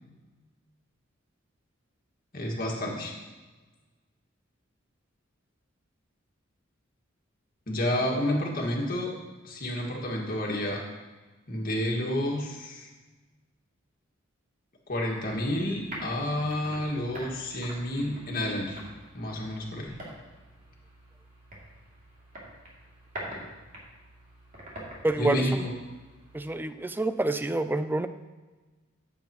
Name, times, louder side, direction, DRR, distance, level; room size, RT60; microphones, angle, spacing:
voice 1, 2.3-3.1 7.7-9.1 9.4-10.8 11.5-12.9 14.9-18.8 19.1-19.9 25.2-25.8, left 1 dB, 50° left, -1 dB, 1.8 m, -30 dB
sound 1, 15.1-26.5, equal, 40° right, 2.6 m, -45 dB
voice 2, 25.0-25.6 26.3-28.1, right 2 dB, 10° right, 11 dB, 0.3 m, -27 dB
14.0 x 7.3 x 3.0 m, 1.2 s
head